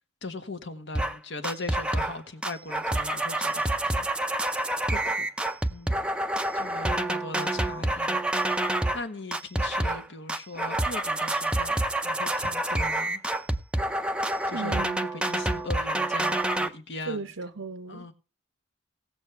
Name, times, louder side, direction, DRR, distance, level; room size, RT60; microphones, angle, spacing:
voice 1, 0.2-4.1 5.7-6.1 6.5-8.2 8.9-13.2 14.5-14.8 15.3-17.2 17.9-18.1, left 2 dB, 55° left, 1.5 m, -39 dB
sound 1, 1.0-1.2 1.4-2.2 2.4-9.0 9.3-10.0 10.3-16.7, right 1 dB, 5° right, 0.6 m, -27 dB
voice 2, 4.9-5.3 14.5-15.1 17.0-18.1, right 3 dB, 65° right, 0.7 m, -36 dB
18.5 x 7.3 x 3.5 m
head